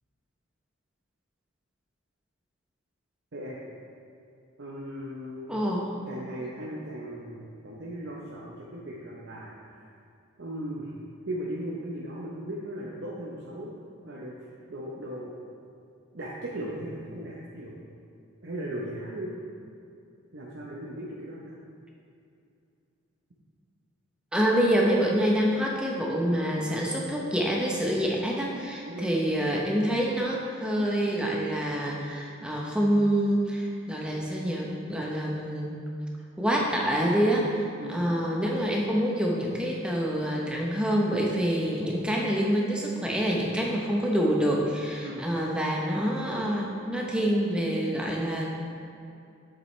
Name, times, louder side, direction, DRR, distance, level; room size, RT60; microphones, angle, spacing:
voice 1, 4.6-5.6 6.1-9.9 10.4-10.9 11.3-13.7 14.0-14.4 14.7-15.3 16.1-17.8 18.4-19.3 20.3-21.6 28.9-29.1 37.8-38.0 45.0-45.2, right 1 dB, 55° right, -5 dB, 0.8 m, -37 dB
voice 2, 5.5-5.9 24.3-35.8 36.4-48.5, equal, 5° right, -2 dB, 0.8 m, -26 dB
8.2 x 7.6 x 3.2 m, 2.6 s
head